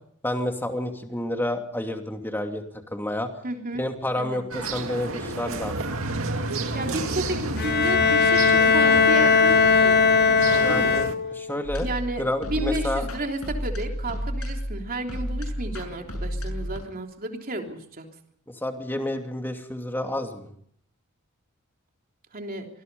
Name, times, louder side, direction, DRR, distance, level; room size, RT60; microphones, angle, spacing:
voice 1, 0.2-2.6 2.9-3.3 3.7-5.8 10.6-11.9 12.2-13.1 18.5-20.5, left 1 dB, 10° left, 4 dB, 2.7 m, -29 dB
voice 2, 3.4-3.8 4.1-4.4 6.7-10.0 10.4-11.0 11.8-18.1 22.3-22.7, right 1 dB, 40° right, 3 dB, 3.4 m, -32 dB
sound 1, 4.5-11.2, right 2 dB, 65° right, 2.3 m, -31 dB
Bowed string instrument, 7.6-11.5, left 5 dB, 50° left, 1.1 m, -19 dB
sound 2, 11.6-16.8, equal, 85° left, 7.0 m, -31 dB
26.0 x 21.0 x 5.5 m, 0.63 s
head